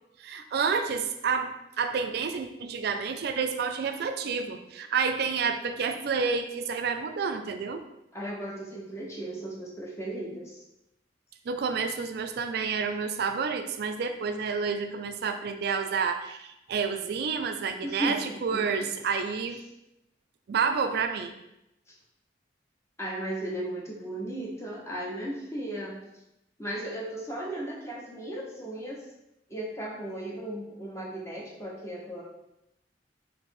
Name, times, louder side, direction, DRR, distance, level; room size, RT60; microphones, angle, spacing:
voice 1, 0.2-7.8 11.5-19.6 20.5-21.3, right 5 dB, 60° right, 7 dB, 0.4 m, -29 dB
voice 2, 8.1-10.6 17.8-18.2 18.5-18.9 23.0-26.0 26.6-29.0 29.5-32.2, right 1 dB, 15° left, -3 dB, 0.8 m, -36 dB
3.1 x 2.8 x 4.4 m, 0.87 s
head